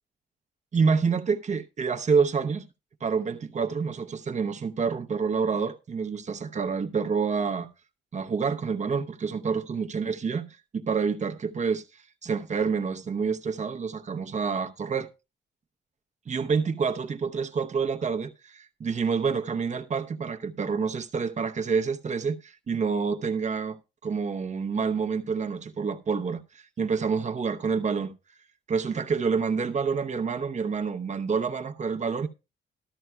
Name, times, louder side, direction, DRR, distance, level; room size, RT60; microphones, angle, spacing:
voice 1, 0.7-2.7 3.0-7.7 8.1-15.1 16.3-23.8 24.0-28.1 28.7-32.3, right 5 dB, 35° right, 0.9 m, -28 dB
13.5 x 12.5 x 2.3 m
cardioid pair, 90°, 20 cm